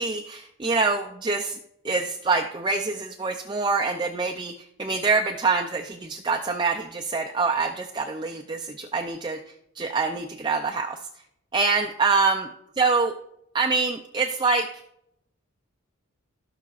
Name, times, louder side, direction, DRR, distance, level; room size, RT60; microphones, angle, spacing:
voice 1, 0.0-1.6 1.8-4.5 4.8-9.4 9.8-11.0 11.5-12.5 12.8-13.1 13.5-14.7, right 4 dB, 20° right, 2 dB, 0.4 m, -25 dB
16.5 x 5.8 x 2.5 m, 0.77 s
head